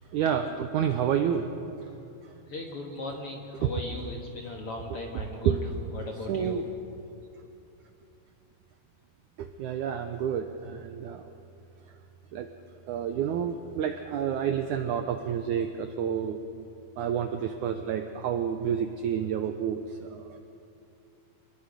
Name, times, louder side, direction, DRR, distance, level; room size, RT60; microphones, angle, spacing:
voice 1, 0.1-1.5 3.6-3.7 5.5-5.6 6.3-6.7 9.4-11.2 12.3-12.5 12.9-16.4 17.0-20.3, right 8 dB, 85° right, 7 dB, 1.7 m, -29 dB
voice 2, 2.5-5.6 5.9-6.6, left 2 dB, 55° left, 1 dB, 1.7 m, -37 dB
26.0 x 21.0 x 5.2 m, 2.8 s
omnidirectional pair, 4.5 m